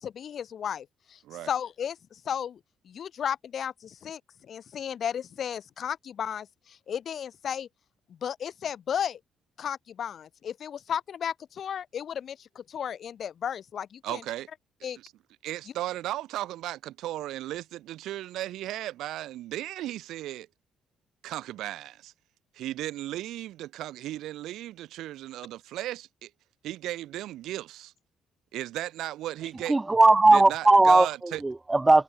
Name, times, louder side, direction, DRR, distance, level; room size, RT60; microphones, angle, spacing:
voice 1, 0.0-1.2 1.5-2.6 2.8-7.7 8.1-9.2 9.6-14.2 14.8-15.0, left 8 dB, 55° left, 0.9 m, -34 dB
voice 2, 14.0-14.5 15.0-15.1 15.4-20.5 21.2-22.1 22.5-26.3 26.6-27.9 28.5-29.8 30.3-31.4, right 14 dB, 85° right, 0.7 m, -35 dB
voice 3, 29.7-32.0, right 2 dB, 15° right, 0.4 m, -19 dB
cardioid pair, 95°, 0 cm